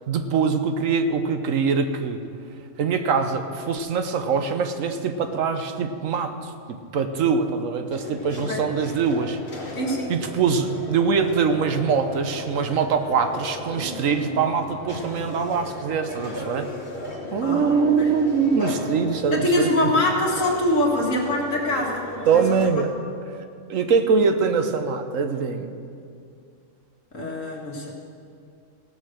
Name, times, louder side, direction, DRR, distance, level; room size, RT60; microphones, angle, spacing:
voice 1, 0.1-2.2 2.8-6.5 6.9-9.4 10.1-16.7 17.3-19.9 22.3-22.9 23.7-25.7, right 5 dB, 90° right, 8 dB, 1.2 m, -23 dB
sound 1, 7.9-22.7, left 1 dB, 45° left, 1.7 m, -36 dB
voice 2, 9.7-10.1 17.4-18.1 19.3-22.8 27.1-27.9, left 1 dB, 75° left, -1 dB, 2.2 m, -24 dB
16.5 x 6.7 x 6.3 m, 2.4 s
omnidirectional pair, 1.3 m